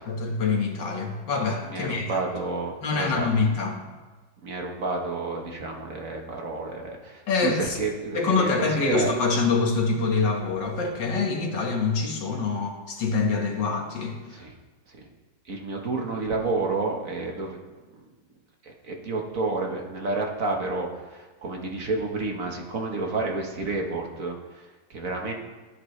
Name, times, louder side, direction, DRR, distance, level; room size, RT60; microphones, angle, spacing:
voice 1, 0.1-2.2 2.8-3.8 7.3-7.8 8.1-14.4, left 4 dB, 80° left, 1 dB, 2.2 m, -25 dB
voice 2, 1.7-3.3 4.4-9.1 14.3-14.5 14.9-15.1 15.5-17.6 18.6-25.3, right 3 dB, 50° right, 1 dB, 1.7 m, -30 dB
16.5 x 11.0 x 3.3 m, 1.3 s
omnidirectional pair, 1.9 m